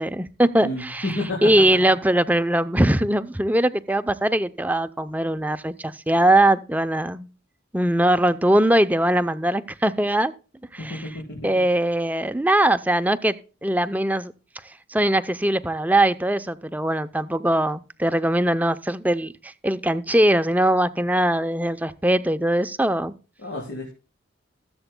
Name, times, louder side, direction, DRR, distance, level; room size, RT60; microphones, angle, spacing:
voice 1, 0.0-7.3 7.7-10.3 10.7-11.2 11.4-13.4 13.6-14.3 14.6-23.1, right 1 dB, 10° right, 0.6 m, -21 dB
voice 2, 0.6-1.5 10.8-11.4 23.4-23.9, left 1 dB, 70° left, 3.8 m, -30 dB
20.5 x 7.9 x 2.2 m
head